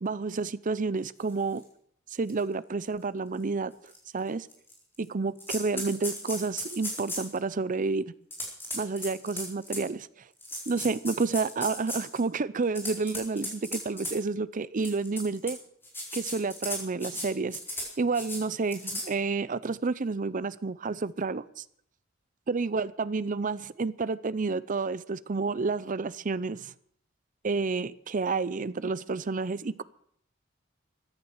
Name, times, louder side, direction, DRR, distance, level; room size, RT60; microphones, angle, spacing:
voice 1, 0.0-1.6 2.1-3.7 4.1-4.5 5.0-8.0 8.7-10.1 10.7-15.6 16.1-17.6 18.0-21.6 22.5-26.7 27.4-29.8, right 4 dB, 40° right, 17 dB, 0.6 m, -30 dB
sound 1, 1.6-1.7 2.3-2.4 2.8-2.9 3.9-4.0 4.5-5.0 5.4-7.4 8.3-9.9 10.4-12.2 12.6-14.1 14.8-15.5 15.8-17.3 17.5-17.9 18.1-18.4 18.7-19.0, left 1 dB, 10° left, 4.5 m, -36 dB
14.5 x 10.5 x 7.9 m, 0.68 s
head